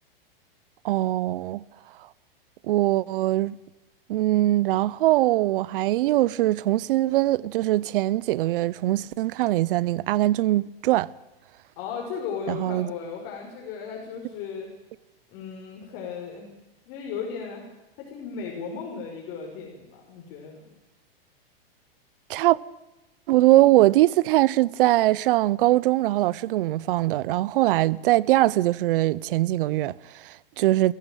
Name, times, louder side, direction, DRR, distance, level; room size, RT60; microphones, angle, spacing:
voice 1, 0.8-1.6 2.7-3.6 4.1-11.1 12.5-12.9 22.3-22.6 23.3-30.9, right 16 dB, 60° right, 0.8 m, -22 dB
voice 2, 11.8-14.7 15.3-16.5 16.9-17.7 18.0-20.6, left 6 dB, 45° left, 5.6 m, -36 dB
23.0 x 15.5 x 9.2 m
hypercardioid pair, 135°, 30 cm